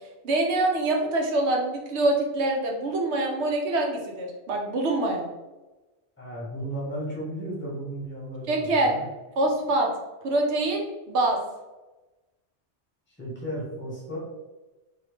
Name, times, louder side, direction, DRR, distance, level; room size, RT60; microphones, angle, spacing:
voice 1, 0.2-5.3 8.5-9.0 9.4-9.9 10.2-11.4, right 2 dB, 70° right, 1 dB, 0.9 m, -25 dB
voice 2, 6.2-9.1 13.2-14.2, right 1 dB, 10° left, -6 dB, 0.9 m, -34 dB
2.7 x 2.7 x 3.3 m, 1.1 s
omnidirectional pair, 1.2 m